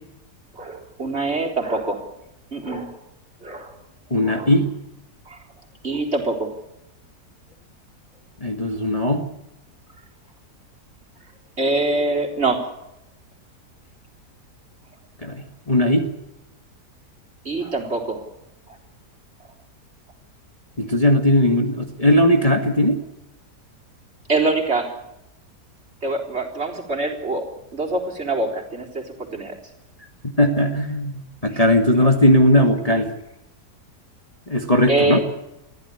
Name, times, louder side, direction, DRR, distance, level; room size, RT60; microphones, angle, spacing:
voice 1, 0.5-2.0 2.5-3.0 3.4-3.7 4.2-4.5 5.3-5.4 5.8-6.5 11.6-12.7 17.4-18.2 24.3-24.9 26.0-27.5 27.7-29.6 31.5-31.6 34.9-35.2, right 2 dB, 40° right, 1 dB, 4.2 m, -24 dB
voice 2, 4.1-4.7 8.4-9.3 15.2-16.1 20.8-23.0 30.2-33.1 34.5-35.2, left 1 dB, 20° left, 3 dB, 2.1 m, -18 dB
23.0 x 15.0 x 9.9 m, 0.89 s
omnidirectional pair, 1.7 m